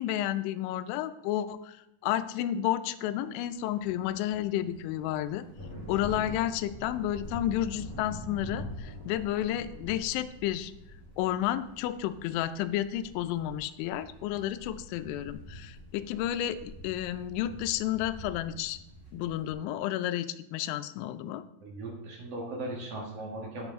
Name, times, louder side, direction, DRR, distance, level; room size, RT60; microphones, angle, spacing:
voice 1, 0.0-1.8 2.0-5.5 5.9-10.7 11.2-18.8 19.1-21.4, left 12 dB, 80° left, 12 dB, 2.9 m, -31 dB
sound 1, 3.5-19.5, equal, 20° right, 2.2 m, -45 dB
voice 2, 21.6-23.7, right 2 dB, 70° right, -2 dB, 1.4 m, -38 dB
10.0 x 9.1 x 3.6 m, 0.87 s
omnidirectional pair, 5.6 m